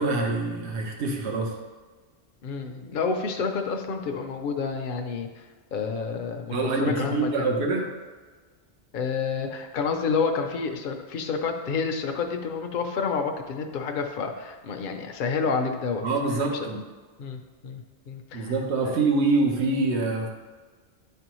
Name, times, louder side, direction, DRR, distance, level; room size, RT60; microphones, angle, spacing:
voice 1, 0.0-1.5 6.5-7.9 16.0-16.8 18.3-20.3, right 3 dB, 70° right, 1 dB, 1.1 m, -25 dB
voice 2, 2.4-5.4 5.7-7.5 8.9-16.0 17.2-18.5 18.8-19.1, left 5 dB, 55° left, 4 dB, 0.7 m, -29 dB
10.0 x 3.4 x 3.0 m, 1.4 s
omnidirectional pair, 1.2 m